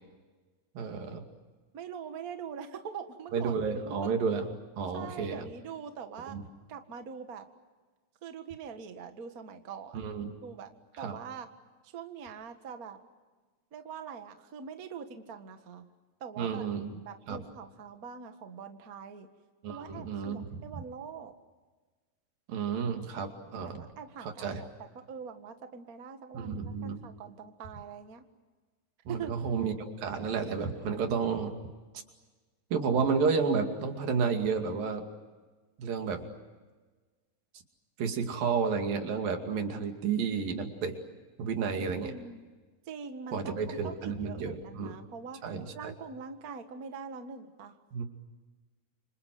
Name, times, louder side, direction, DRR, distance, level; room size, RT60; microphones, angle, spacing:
voice 1, 0.8-1.2 3.3-5.4 6.3-6.4 9.9-10.3 11.0-11.2 16.4-16.9 17.3-17.4 19.6-20.6 22.5-23.8 24.2-24.6 26.3-27.0 29.1-31.5 32.7-35.0 35.8-36.2 38.0-41.0 41.4-42.1 43.3-44.9 45.4-45.9 47.9-48.1, right 5 dB, 90° right, 5 dB, 4.2 m, -31 dB
voice 2, 1.7-4.1 4.9-6.4 6.7-7.4 8.2-10.0 10.4-10.7 11.0-11.5 11.9-13.0 13.7-15.9 16.2-16.7 16.9-19.3 19.7-21.3 23.6-28.2 29.1-29.3 42.0-42.5 42.9-45.4 45.7-47.8, right 6 dB, 40° right, 7 dB, 1.5 m, -43 dB
28.5 x 26.5 x 7.7 m, 1.3 s
omnidirectional pair, 3.9 m